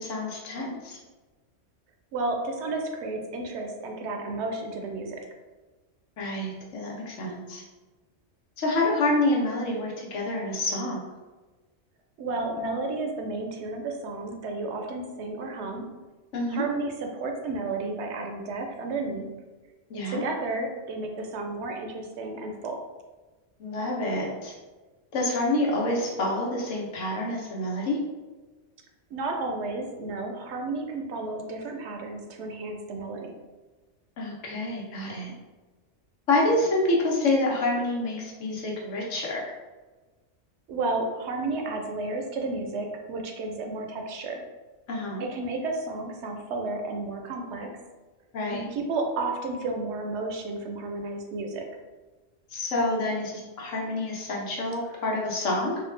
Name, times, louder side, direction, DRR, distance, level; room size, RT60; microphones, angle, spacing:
voice 1, 0.0-1.0 6.2-7.6 8.6-11.1 16.3-16.6 19.9-20.2 23.6-24.5 25.1-28.0 34.2-35.3 36.3-39.4 44.9-45.2 48.3-48.7 52.5-55.8, left 2 dB, 90° left, -3 dB, 1.2 m, -27 dB
voice 2, 2.1-5.2 12.2-15.8 16.5-19.3 20.1-22.8 29.1-33.3 40.7-44.4 45.2-47.7 48.5-51.7, right 3 dB, 70° right, 3 dB, 0.8 m, -32 dB
4.1 x 2.3 x 3.2 m, 1.2 s
omnidirectional pair, 1.3 m